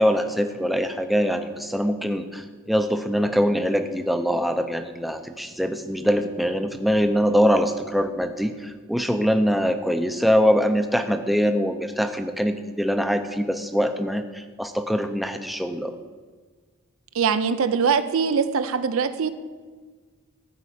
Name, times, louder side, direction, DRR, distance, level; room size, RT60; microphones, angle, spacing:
voice 1, 0.0-15.9, equal, ahead, 7 dB, 0.5 m, -23 dB
voice 2, 17.2-19.3, right 6 dB, 65° right, 11 dB, 0.5 m, -22 dB
14.0 x 4.7 x 8.5 m, 1.4 s
head